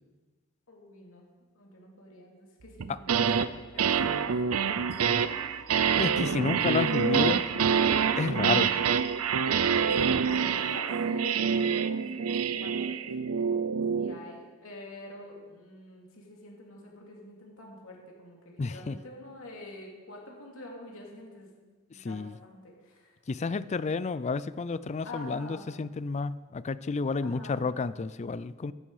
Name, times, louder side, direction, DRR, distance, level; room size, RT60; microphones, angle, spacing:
voice 1, 0.7-1.2 1.5-3.3 3.7-5.5 8.8-9.0 9.6-13.5 14.0-21.5 21.9-23.1 25.0-25.8 27.2-27.8, left 1 dB, 65° left, -1 dB, 3.0 m, -46 dB
sound 1, 2.8-3.5 3.8-14.2, right 6 dB, 90° right, 0.6 m, -26 dB
voice 2, 6.0-7.4 8.2-8.7 18.6-19.0 22.0-22.4 23.3-28.7, left 4 dB, 30° left, 17 dB, 0.4 m, -31 dB
14.5 x 11.0 x 4.9 m, 1.4 s
head